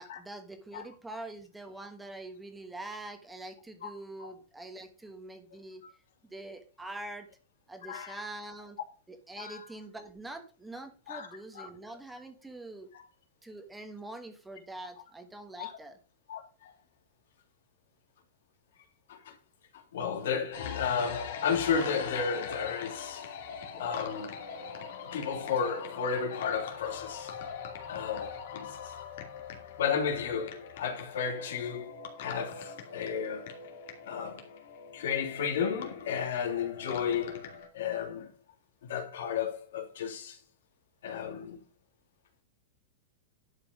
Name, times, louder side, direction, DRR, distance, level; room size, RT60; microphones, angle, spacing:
voice 1, 0.0-5.8 6.3-7.3 7.7-8.8 9.1-12.9 13.4-16.0, right 2 dB, 5° right, 1.3 m, -44 dB
voice 2, 7.9-8.2 9.4-9.7 11.1-11.3 11.5-11.7 12.9-13.0 15.6-15.7 16.3-16.7 19.1-19.3 19.9-23.2 23.8-24.4 25.1-27.3 27.9-28.9 29.8-31.9 32.2-33.6 34.1-34.5 34.9-38.3 38.8-40.4 41.0-41.6, left 6 dB, 80° left, 2.8 m, -33 dB
sound 1, 20.5-37.7, left 7 dB, 65° left, 2.6 m, -42 dB
11.0 x 5.6 x 5.2 m
supercardioid pair, 170°, 0 cm